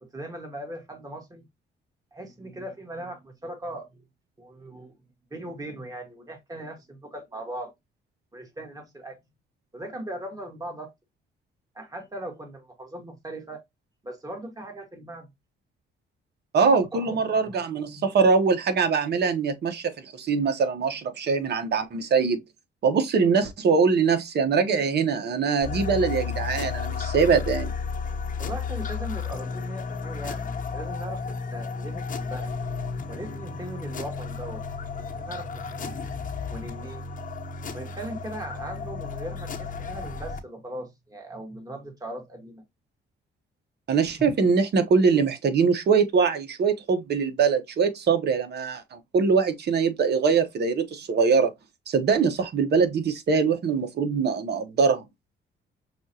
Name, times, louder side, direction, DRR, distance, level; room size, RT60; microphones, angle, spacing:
voice 1, 0.0-1.4 2.1-4.0 4.4-4.9 5.3-7.7 8.3-9.2 9.7-10.9 11.7-13.6 14.0-15.3 16.9-17.7 18.0-18.1 28.4-32.5 33.1-34.6 35.2-35.9 36.5-37.1 37.7-42.6 44.2-44.3, right 1 dB, 20° right, 1.7 m, -39 dB
voice 2, 16.5-22.4 22.8-27.7 43.9-51.5 51.9-55.0, right 5 dB, 55° right, 1.0 m, -23 dB
sound 1, 25.6-40.4, left 5 dB, 40° left, 1.0 m, -33 dB
6.0 x 2.5 x 2.7 m
cardioid pair, 90°, 20 cm